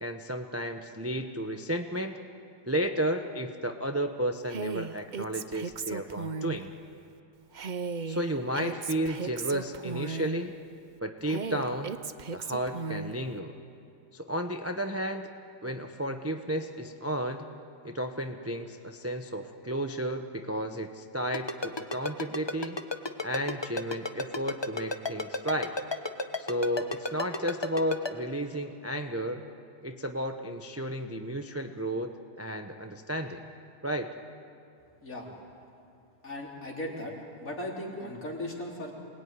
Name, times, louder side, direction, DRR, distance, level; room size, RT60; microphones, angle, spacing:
voice 1, 0.0-2.2 2.7-6.7 8.1-10.5 11.0-12.0 12.3-13.5 14.1-15.3 15.6-17.5 17.8-22.8 23.2-25.7 26.4-29.4 29.8-32.1 32.4-33.4 33.8-34.1, right 1 dB, 10° right, 5 dB, 0.8 m, -33 dB
Female speech woman speaking, 4.5-6.6 7.5-10.4 11.3-13.2, right 5 dB, 45° right, 0.5 m, -36 dB
Ringtone, 21.3-28.1, left 2 dB, 20° left, 0.9 m, -31 dB
voice 2, 36.2-37.1 37.4-38.9, left 1 dB, 55° left, -2 dB, 4.3 m, -37 dB
27.0 x 20.5 x 9.7 m, 2.6 s
omnidirectional pair, 1.8 m